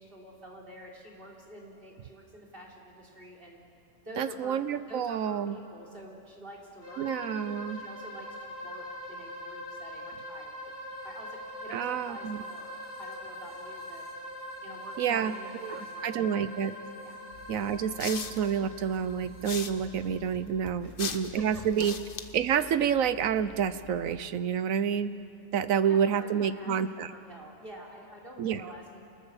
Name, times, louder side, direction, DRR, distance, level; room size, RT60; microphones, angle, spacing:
voice 1, 0.0-3.6 4.0-4.6 4.9-10.5 11.0-12.7 13.0-14.0 14.6-16.6 17.0-17.2 20.8-21.2 25.8-29.0, equal, 45° right, -1 dB, 3.9 m, -48 dB
voice 2, 4.2-5.6 7.0-7.8 11.7-12.4 15.0-15.3 15.6-16.7 17.5-22.0 22.3-25.1 25.5-27.1 28.4-28.6, right 8 dB, 90° right, 13 dB, 1.3 m, -28 dB
sound 1, 6.8-20.4, left 1 dB, 10° right, 5.0 m, -43 dB
sound 2, 17.3-24.2, left 5 dB, 45° left, 1.1 m, -42 dB
28.0 x 20.5 x 7.2 m, 2.5 s
omnidirectional pair, 1.4 m